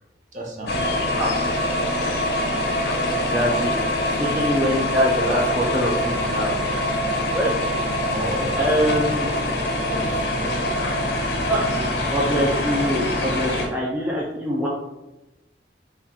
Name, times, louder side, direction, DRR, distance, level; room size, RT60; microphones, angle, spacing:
voice 1, 0.3-0.8 8.1-9.2 9.6-10.5, right 1 dB, 45° right, -2 dB, 0.7 m, -33 dB
sound 1, 0.7-13.7, left 1 dB, 60° left, 0.6 m, -24 dB
voice 2, 3.1-3.7 4.2-6.5 7.3-7.5 8.6-9.3 11.5-11.8 12.1-14.7, equal, 10° right, -5 dB, 0.3 m, -23 dB
2.8 x 2.3 x 3.7 m, 1.0 s
head